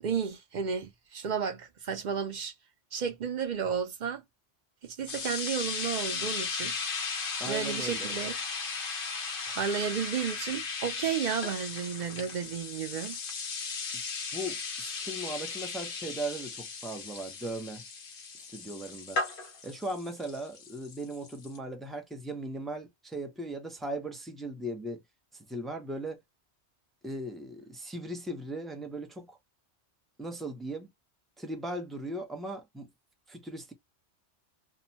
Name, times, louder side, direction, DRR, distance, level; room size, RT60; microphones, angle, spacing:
voice 1, 0.0-2.5 2.9-4.2 4.8-6.7 7.4-8.3 9.5-13.2, right 7 dB, 55° right, 0.5 m, -32 dB
sound 1, 5.1-21.6, left 4 dB, 55° left, 0.9 m, -36 dB
voice 2, 7.4-8.1 14.3-17.8 18.5-19.2 19.6-25.0 25.5-26.2 27.0-29.4 30.2-30.9 31.4-32.9 33.3-33.7, right 1 dB, ahead, 0.4 m, -38 dB
2.8 x 2.1 x 2.7 m
omnidirectional pair, 1.2 m